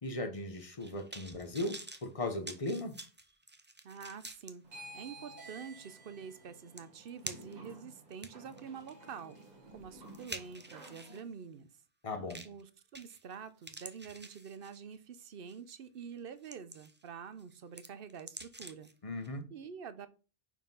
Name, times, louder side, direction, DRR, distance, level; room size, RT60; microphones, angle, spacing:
voice 1, 0.0-3.0 12.0-12.4 19.0-19.5, left 2 dB, 35° left, 1.0 m, -37 dB
sound 1, 0.6-4.5 5.1-5.2 6.3-6.4 6.8-7.7 8.1-11.2 12.3-12.6 12.9-13.3 13.6-14.9 15.5-15.7 16.2-17.1 17.4-18.9 19.2-19.3, right 2 dB, 15° right, 0.6 m, -48 dB
voice 2, 3.8-4.6 4.9-9.4 9.7-11.7 12.4-18.9 19.5-20.1, right 6 dB, 65° right, 0.9 m, -47 dB
sound 2, 4.6-11.2, right 1 dB, 45° right, 1.5 m, -53 dB
5.6 x 4.8 x 5.4 m
omnidirectional pair, 1.0 m